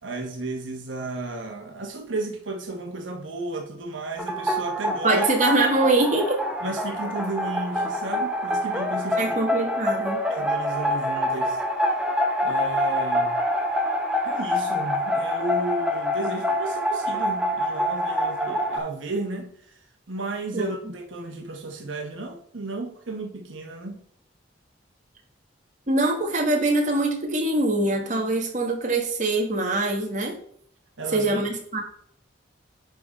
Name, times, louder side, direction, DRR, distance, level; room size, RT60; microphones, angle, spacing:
voice 1, 0.0-5.2 6.6-9.4 10.3-11.6 12.4-13.4 14.2-24.0 31.0-31.4, right 2 dB, 80° right, 1.1 m, -33 dB
sound 1, 4.2-18.8, equal, 5° right, 0.7 m, -26 dB
voice 2, 5.0-6.4 9.2-10.2 20.5-20.7 25.9-30.4 31.1-31.8, right 2 dB, 40° right, 1.4 m, -23 dB
10.5 x 3.7 x 4.1 m
head